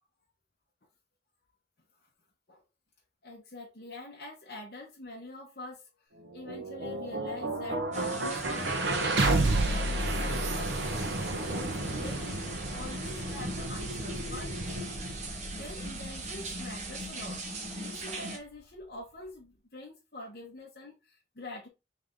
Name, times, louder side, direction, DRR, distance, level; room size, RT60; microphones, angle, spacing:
voice 1, 3.2-6.1 6.3-8.7 9.1-10.7 11.0-11.1 11.5-15.2 15.6-17.4 17.8-21.7, left 2 dB, 60° left, 1.0 m, -45 dB
sound 1, 6.2-18.3, right 2 dB, 80° right, 0.9 m, -32 dB
sound 2, 7.9-18.4, right 1 dB, 40° right, 1.0 m, -40 dB
3.5 x 3.4 x 3.7 m
head